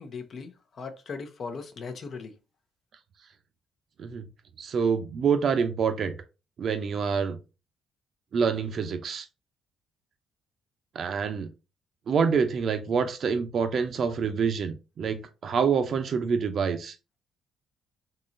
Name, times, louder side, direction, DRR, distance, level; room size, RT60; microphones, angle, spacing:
voice 1, 0.0-2.4, left 4 dB, 50° left, 0.7 m, -38 dB
voice 2, 4.6-6.2 6.6-7.4 8.3-9.3 10.9-11.5 12.1-16.9, right 6 dB, 50° right, 0.6 m, -26 dB
3.7 x 2.9 x 2.6 m
cardioid pair, 110°, 0 cm